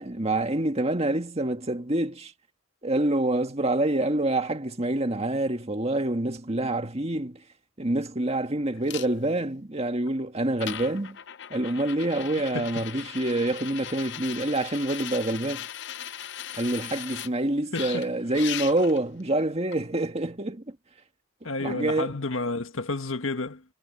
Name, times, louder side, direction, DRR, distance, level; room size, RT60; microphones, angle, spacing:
voice 1, 0.0-2.3 2.8-7.4 7.8-11.2 11.5-15.7 16.6-20.8 21.6-22.1, right 1 dB, 30° right, 1.8 m, -27 dB
sound 1, 8.9-9.1 10.1-10.2 10.6-17.3 17.7-19.0 19.7-19.8, left 11 dB, 60° left, 0.7 m, -38 dB
voice 2, 17.7-18.1 21.4-23.6, left 3 dB, 75° left, 1.7 m, -31 dB
head